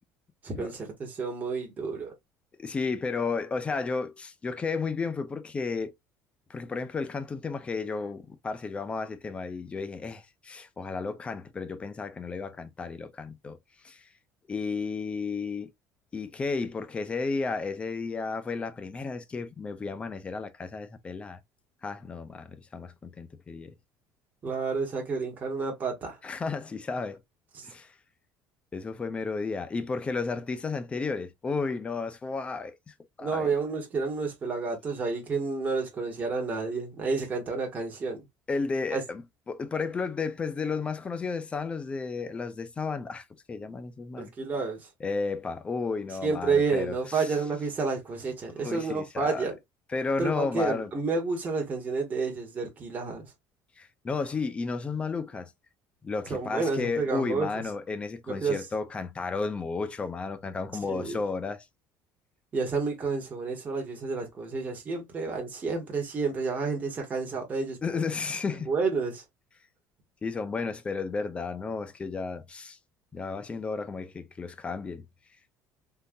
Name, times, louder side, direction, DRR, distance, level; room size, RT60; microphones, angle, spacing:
voice 1, 0.4-2.1 24.4-26.2 27.5-27.7 33.2-38.2 38.9-39.0 44.2-44.9 46.1-49.6 50.2-53.3 56.3-57.7 58.3-58.7 60.9-61.2 62.5-68.1 68.5-69.2, right 4 dB, 25° right, 1.3 m, -30 dB
voice 2, 2.6-5.9 6.5-13.6 13.8-14.0 14.5-15.7 16.1-21.4 21.8-23.7 26.2-27.2 27.6-27.9 28.7-33.5 38.5-39.2 39.5-44.3 45.0-47.2 48.6-49.5 49.9-50.9 53.8-55.5 56.0-61.6 67.8-68.7 70.2-72.8 73.1-75.1, left 4 dB, 15° left, 0.4 m, -33 dB
3.7 x 2.6 x 2.6 m
cardioid pair, 165°, 7 cm